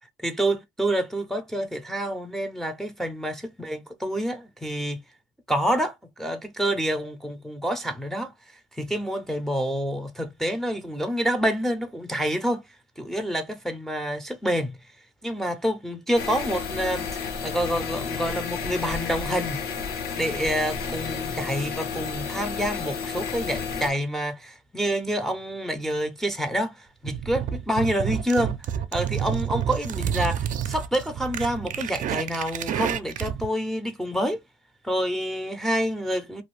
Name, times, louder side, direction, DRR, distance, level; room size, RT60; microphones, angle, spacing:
voice 1, 0.2-5.0 5.5-8.3 8.8-12.6 13.0-14.7 15.2-19.6 20.1-28.6 28.9-34.4 34.8-36.4, equal, ahead, 0.6 m, -27 dB
sound 1, 16.2-23.9, left 5 dB, 65° left, 1.1 m, -31 dB
sound 2, 27.0-33.5, right 9 dB, 50° right, 0.4 m, -29 dB
2.5 x 2.3 x 3.2 m
cardioid pair, 110°, 17 cm